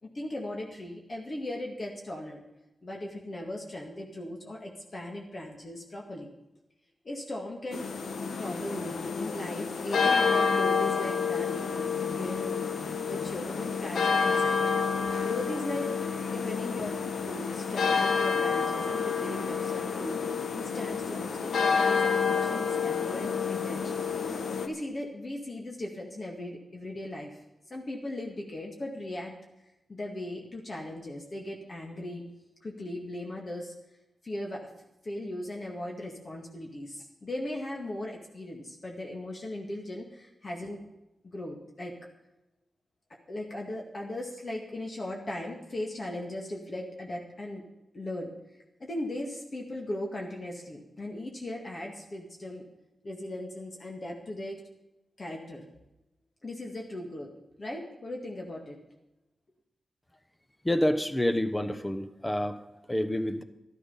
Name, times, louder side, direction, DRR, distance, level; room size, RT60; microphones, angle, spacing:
voice 1, 0.0-2.4 2.8-6.3 7.0-7.9 8.4-12.6 13.1-14.7 15.2-20.2 20.5-24.1 24.6-27.4 27.7-29.4 29.9-32.3 32.6-33.7 34.2-34.7 35.0-40.9 41.2-41.9 43.3-47.6 47.9-48.3 48.8-52.7 53.0-54.6 55.2-55.7 56.4-57.3 57.6-58.8, left 1 dB, 40° left, 0 dB, 2.1 m, -38 dB
sound 1, 7.7-24.7, left 5 dB, 90° left, 1.1 m, -29 dB
voice 2, 60.6-62.6 62.9-63.4, left 1 dB, 10° left, 9 dB, 1.0 m, -28 dB
13.0 x 12.5 x 5.6 m, 0.94 s
wide cardioid pair, 105°, 0 cm